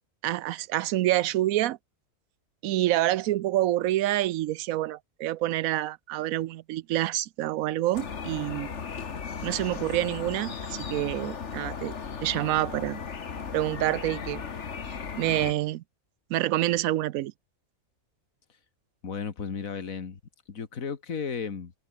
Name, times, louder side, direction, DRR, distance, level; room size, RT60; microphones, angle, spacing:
voice 1, 0.2-1.8 2.6-8.8 9.4-11.9 12.2-13.0 13.5-14.4 14.8-15.8 16.3-17.3, right 14 dB, 75° right, 1.0 m, -27 dB
sound 1, 7.9-15.5, left 6 dB, 55° left, 1.8 m, -36 dB
voice 2, 19.0-20.2 20.5-21.7, left 6 dB, 70° left, 2.3 m, -34 dB
omnidirectional pair, 1.5 m